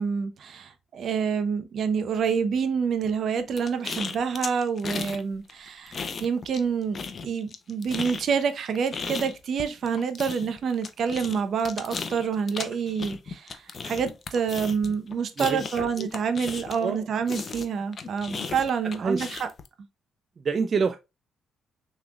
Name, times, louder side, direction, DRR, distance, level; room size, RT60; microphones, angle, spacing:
voice 1, 0.0-19.5, right 6 dB, 60° right, 0.8 m, -27 dB
sound 1, 3.6-5.2 5.5-6.7 6.9-16.9 17.3-19.7, left 5 dB, 45° left, 0.7 m, -36 dB
voice 2, 15.4-16.1 16.8-17.0 19.0-19.3 20.4-21.0, right 5 dB, 45° right, 0.4 m, -27 dB
5.9 x 3.3 x 2.4 m
cardioid pair, 90°, 0 cm